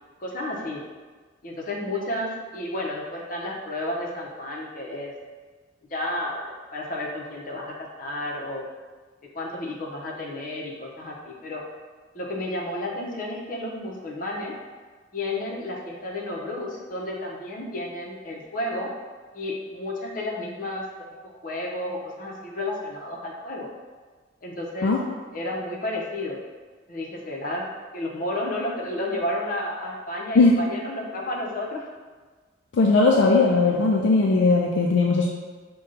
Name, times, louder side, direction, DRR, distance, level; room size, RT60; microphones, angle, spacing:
voice 1, 0.2-0.8 1.4-5.1 5.9-8.6 9.3-11.6 12.1-14.5 15.1-18.9 19.3-20.8 21.2-23.7 24.4-25.0 25.3-26.4 26.9-27.7 27.9-31.9, left 1 dB, 45° left, -2 dB, 0.7 m, -31 dB
voice 2, 32.7-35.3, left 3 dB, 70° left, -1 dB, 0.4 m, -18 dB
5.3 x 2.3 x 3.8 m, 1.4 s
head